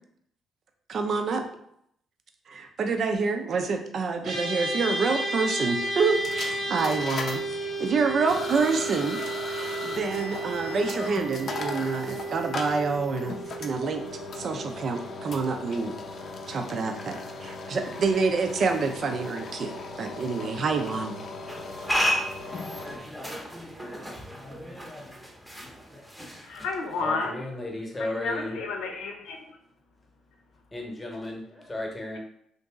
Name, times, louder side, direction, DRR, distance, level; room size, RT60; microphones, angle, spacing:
voice 1, 0.9-1.5 2.5-9.2 9.4-14.0 14.4-15.9 16.5-21.2, right 4 dB, 55° right, 5 dB, 0.5 m, -27 dB
sound 1, 4.2-15.7, right 2 dB, 80° right, 1.3 m, -33 dB
sound 2, 6.1-23.0, left 3 dB, 55° left, 0.5 m, -38 dB
sound 3, 21.5-27.1, equal, 5° right, 0.7 m, -33 dB
voice 2, 26.4-27.4 28.0-29.4, left 4 dB, 90° left, 3 dB, 0.7 m, -31 dB
voice 3, 27.0-28.6 30.7-32.2, left 1 dB, 20° left, 1 dB, 0.9 m, -34 dB
2.9 x 2.6 x 3.6 m, 0.71 s
cardioid pair, 90°, 0 cm